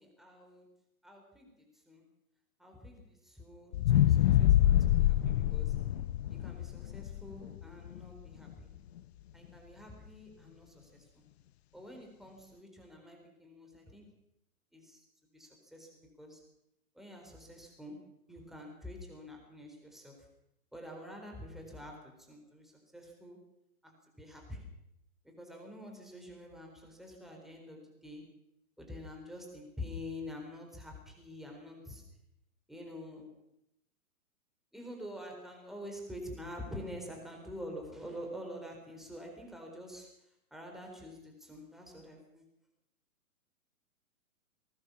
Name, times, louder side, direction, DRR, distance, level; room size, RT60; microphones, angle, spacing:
voice 1, 0.0-0.7 1.0-1.5 1.9-2.0 2.6-5.8 6.3-8.7 9.3-11.0 11.7-14.1 14.7-15.0 15.3-16.4 16.9-20.3 20.7-23.4 23.8-24.6 25.2-28.3 28.8-32.0 32.7-33.4 34.7-40.1 40.5-42.4, left 1 dB, ahead, 1 dB, 4.2 m, -47 dB
sound 1, 3.7-8.0 8.5-8.6, left 12 dB, 45° left, 0.8 m, -26 dB
20.0 x 19.0 x 7.0 m, 0.83 s
hypercardioid pair, 140°, 43 cm